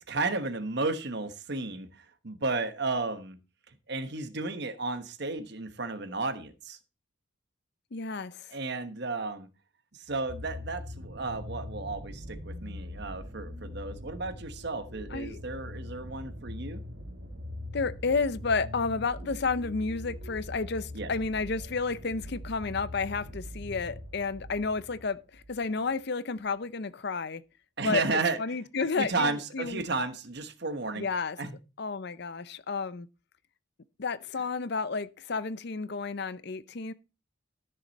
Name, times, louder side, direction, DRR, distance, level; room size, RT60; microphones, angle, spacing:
voice 1, 0.1-3.4 3.9-6.8 8.5-9.5 9.9-16.8 20.9-21.1 27.8-28.4 29.0-31.1 31.4-31.6, right 3 dB, 50° right, 1.2 m, -33 dB
voice 2, 7.9-8.5 15.1-15.4 17.7-27.4 27.8-29.8 30.9-31.4 31.8-33.1 34.0-36.9, left 4 dB, 50° left, 0.6 m, -31 dB
sound 1, 10.1-25.7 26.5-26.6, left 1 dB, 70° right, 2.5 m, -42 dB
13.5 x 6.8 x 4.1 m
head